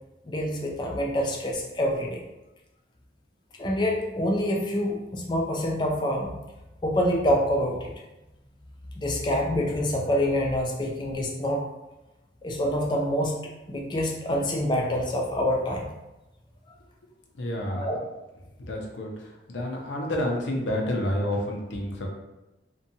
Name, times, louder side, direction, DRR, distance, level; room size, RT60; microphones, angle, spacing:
voice 1, 0.3-2.2 3.6-6.4 6.8-7.9 9.0-11.7 12.4-13.3 13.7-15.9 17.7-18.0, equal, 25° left, 0 dB, 0.3 m, -26 dB
voice 2, 17.4-17.9 18.7-19.1 19.5-22.1, left 1 dB, 75° left, 0 dB, 0.5 m, -29 dB
2.6 x 2.2 x 2.6 m, 1.0 s
head